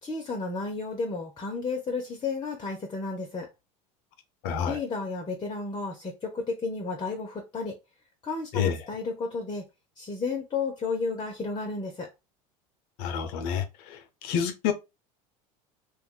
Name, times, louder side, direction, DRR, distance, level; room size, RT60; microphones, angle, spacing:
voice 1, 0.0-3.5 4.6-7.8 8.2-9.6 10.0-12.1, left 4 dB, 25° left, 0.7 m, -32 dB
voice 2, 4.4-4.8 8.5-8.8 13.0-14.7, left 7 dB, 60° left, 0.6 m, -28 dB
2.5 x 2.3 x 3.5 m
hypercardioid pair, 90°, 19 cm